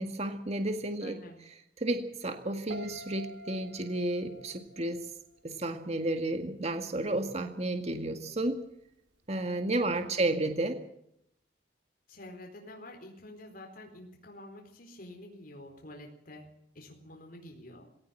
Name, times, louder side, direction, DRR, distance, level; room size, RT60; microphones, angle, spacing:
voice 1, 0.0-1.2 1.8-5.0 5.4-8.7 9.3-10.8, right 2 dB, 35° right, 6 dB, 1.9 m, -32 dB
voice 2, 1.0-1.4 9.7-10.1 12.1-17.9, left 1 dB, 50° left, 2 dB, 4.3 m, -48 dB
Piano, 2.7-5.8 6.1-6.5, right 1 dB, 80° right, 3.0 m, -47 dB
20.0 x 18.0 x 7.6 m, 0.72 s
head